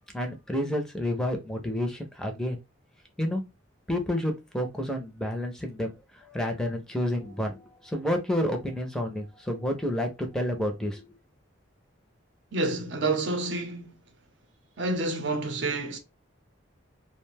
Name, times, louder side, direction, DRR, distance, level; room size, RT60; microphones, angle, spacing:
voice 1, 0.1-2.6 3.2-3.4 3.9-5.9 6.3-11.0, left 1 dB, 5° left, 0.5 m, -29 dB
voice 2, 12.5-13.9 14.8-16.0, right 2 dB, 65° right, 0.6 m, -28 dB
2.5 x 2.1 x 3.3 m
head